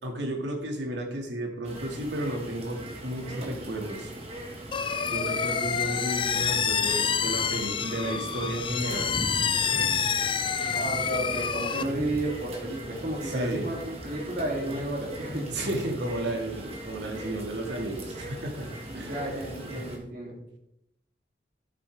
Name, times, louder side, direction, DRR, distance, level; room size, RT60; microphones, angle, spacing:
voice 1, 0.0-4.1 5.1-9.2 13.2-13.7 15.5-18.7 18.9-19.2 19.6-19.8, right 1 dB, 80° right, 2 dB, 2.1 m, -33 dB
sound 1, 1.6-20.0, right 1 dB, 35° right, 1.7 m, -39 dB
sound 2, 4.7-11.8, left 7 dB, 30° left, 0.4 m, -28 dB
voice 2, 10.7-15.5 18.9-20.6, right 1 dB, 50° right, -2 dB, 2.9 m, -32 dB
13.5 x 7.4 x 3.5 m, 0.81 s
head